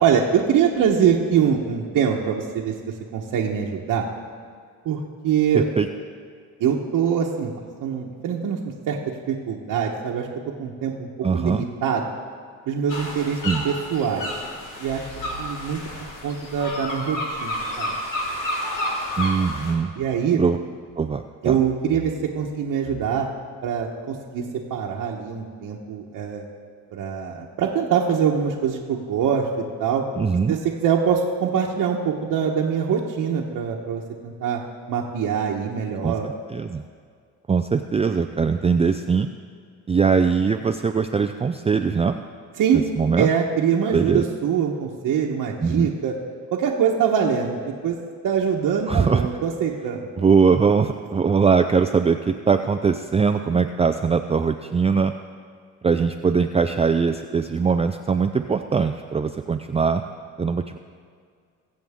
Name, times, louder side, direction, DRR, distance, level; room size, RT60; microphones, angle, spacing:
voice 1, 0.0-4.0 4.8-5.6 6.6-7.5 7.8-8.6 8.9-10.3 10.6-11.1 11.3-12.0 12.7-13.4 13.6-14.3 14.8-15.1 15.4-15.8 16.2-17.9 20.0-20.4 21.4-23.3 23.6-24.4 24.7-26.4 26.9-29.5 29.8-30.0 30.5-34.6 34.9-36.3 42.6-42.8 43.2-46.2 46.5-48.0 48.2-50.1, right 7 dB, 75° right, -2 dB, 1.2 m, -23 dB
voice 2, 5.5-5.9 11.2-11.6 13.4-13.6 19.2-19.9 20.4-20.6 21.0-21.6 30.2-30.5 36.0-36.1 36.5-36.8 37.5-39.3 39.9-42.2 43.0-43.3 43.9-44.2 45.6-45.9 48.9-49.3 50.2-55.1 55.8-60.0 60.4-60.8, right 5 dB, 20° right, 7 dB, 0.4 m, -21 dB
sound 1, 12.9-19.7, left 1 dB, 70° left, 2.8 m, -30 dB
22.5 x 7.7 x 3.6 m, 2.1 s
cardioid pair, 95°, 33 cm